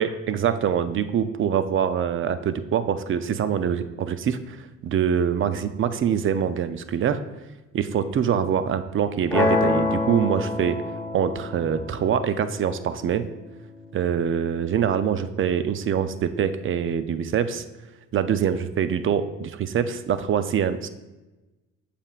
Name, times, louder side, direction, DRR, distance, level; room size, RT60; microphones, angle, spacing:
voice 1, 0.0-7.2 7.7-10.8 11.1-13.3 13.9-17.6 18.1-20.9, right 8 dB, 45° right, 12 dB, 0.5 m, -24 dB
sound 1, 9.3-15.3, left 3 dB, 10° left, 1.2 m, -28 dB
7.3 x 6.8 x 2.4 m, 1.1 s
cardioid pair, 90°, 30 cm